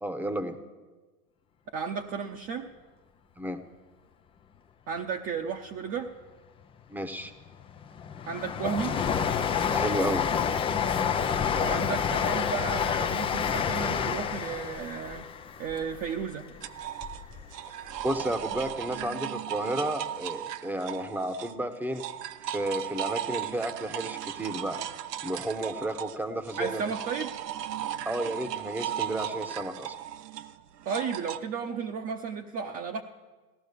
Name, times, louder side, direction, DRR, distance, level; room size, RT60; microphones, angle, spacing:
voice 1, 0.0-0.6 3.4-3.6 6.9-7.3 9.7-10.3 18.0-22.0 22.4-24.8 25.2-26.8 28.0-30.0, right 1 dB, 5° right, 10 dB, 1.0 m, -32 dB
voice 2, 1.7-2.7 4.9-6.1 8.3-8.9 11.6-15.3 15.6-16.5 26.6-27.3 30.8-33.0, right 6 dB, 30° right, 2 dB, 0.9 m, -33 dB
Train, 7.2-17.4 17.8-18.8 19.0-19.1, left 7 dB, 10° left, 0.4 m, -29 dB
sound 1, 16.6-21.6 21.9-31.4, right 11 dB, 80° right, 0.9 m, -36 dB
16.5 x 11.5 x 6.7 m, 1.3 s
hypercardioid pair, 115°, 48 cm